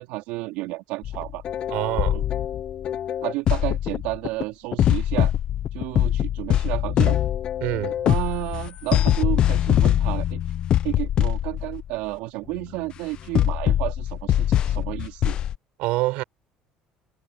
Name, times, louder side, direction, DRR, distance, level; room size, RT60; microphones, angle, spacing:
voice 1, 0.0-1.4 2.1-2.2 3.2-5.3 5.7-7.2 8.0-10.4 10.8-15.4, right 20 dB, 90° right, 3.0 m, -31 dB
sound 1, 1.0-4.4 4.7-11.9 12.6-12.7 13.3-15.5, left 11 dB, 40° left, 0.6 m, -23 dB
voice 2, 1.7-2.2 7.6-8.0 15.8-16.2, right 20 dB, 70° right, 7.4 m, -25 dB
cardioid pair, 165°, 2 cm